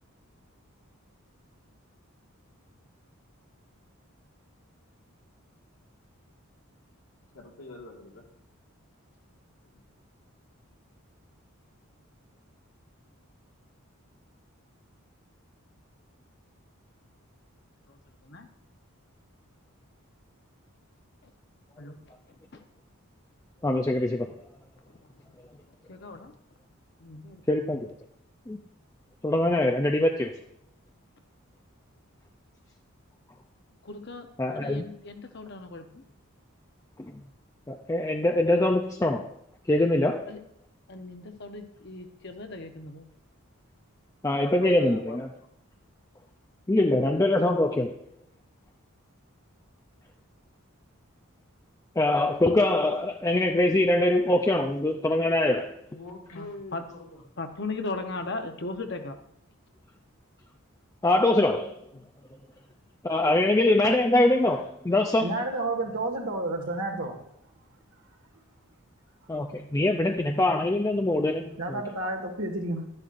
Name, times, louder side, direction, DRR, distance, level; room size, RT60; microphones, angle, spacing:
voice 1, 7.3-8.2 9.6-9.8 44.3-45.2 55.9-57.2, left 2 dB, 85° left, 0 dB, 2.0 m, -44 dB
voice 2, 23.6-24.3 27.5-27.8 28.5-28.6 29.2-30.3 34.4-34.8 37.0-37.1 37.7-39.3 39.7-40.2 44.2-45.3 46.7-48.0 52.0-55.7 61.0-61.8 63.0-65.3 69.3-71.8, left 1 dB, 15° left, 3 dB, 0.4 m, -23 dB
voice 3, 25.9-26.3 27.0-27.7 33.8-34.3 34.5-36.0 40.3-40.4 40.9-43.1 56.3-56.5 56.7-56.8 57.4-59.2 61.9-62.0, left 3 dB, 50° left, 6 dB, 0.9 m, -38 dB
voice 4, 65.2-67.2 71.6-72.9, right 2 dB, 60° right, 2 dB, 1.8 m, -30 dB
12.0 x 10.5 x 2.5 m, 0.73 s
head